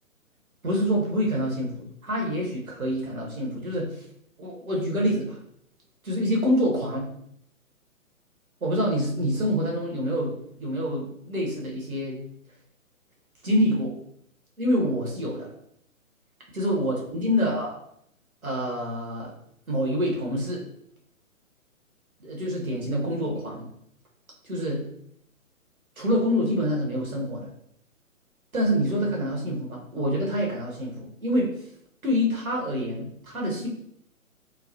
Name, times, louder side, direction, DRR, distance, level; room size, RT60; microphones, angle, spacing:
voice 1, 0.6-4.1 4.4-5.4 6.0-7.1 8.6-12.2 13.4-13.9 14.6-15.5 16.5-17.8 18.4-19.3 19.7-20.6 22.2-23.7 24.4-24.8 26.0-27.5 28.5-31.6 32.0-33.7, equal, 75° right, -2 dB, 1.2 m, -26 dB
3.1 x 2.1 x 2.7 m, 0.70 s
figure-of-eight pair, 135°, 43 cm